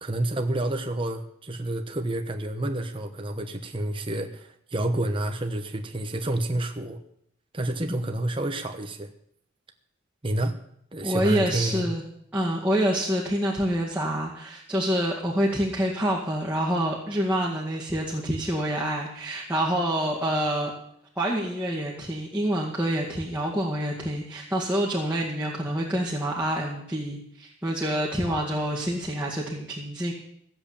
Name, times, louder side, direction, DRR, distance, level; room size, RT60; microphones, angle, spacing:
voice 1, 0.0-7.0 7.5-9.1 10.2-10.6 10.9-11.9, right 1 dB, 25° right, 4 dB, 1.1 m, -29 dB
voice 2, 11.0-12.0 12.3-20.7 21.2-30.1, right 1 dB, 10° right, -6 dB, 2.1 m, -27 dB
15.5 x 7.9 x 8.8 m, 0.72 s
head